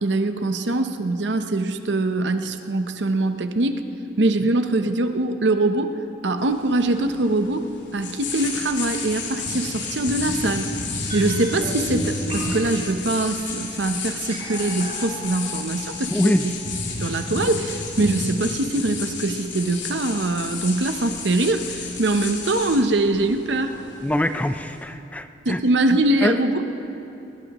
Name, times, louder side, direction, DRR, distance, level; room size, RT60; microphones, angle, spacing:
voice 1, 0.0-3.8 4.2-10.7 11.1-16.5 17.0-23.8 25.4-26.6, right 2 dB, 80° right, 8 dB, 0.8 m, -23 dB
sound 1, 6.4-24.8, left 4 dB, 85° left, 2.3 m, -32 dB
sound 2, 11.1-17.1 17.4-17.5, right 1 dB, 35° right, 4.6 m, -36 dB
voice 2, 16.1-16.4 24.0-25.6 26.2-26.3, left 1 dB, 10° left, 9 dB, 0.4 m, -23 dB
21.0 x 20.0 x 3.0 m, 2.9 s
head